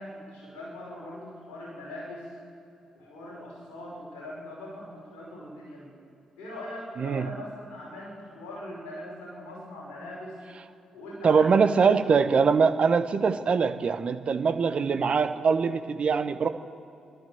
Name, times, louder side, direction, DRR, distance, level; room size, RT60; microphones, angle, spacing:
voice 1, 0.0-2.3 2.9-5.9 6.4-10.4 10.9-12.0, left 1 dB, 70° left, -4 dB, 5.5 m, -41 dB
voice 2, 7.0-7.3 11.2-16.5, right 5 dB, 50° right, 9 dB, 1.1 m, -23 dB
28.0 x 12.0 x 7.9 m, 2.6 s
hypercardioid pair, 40°, 2 cm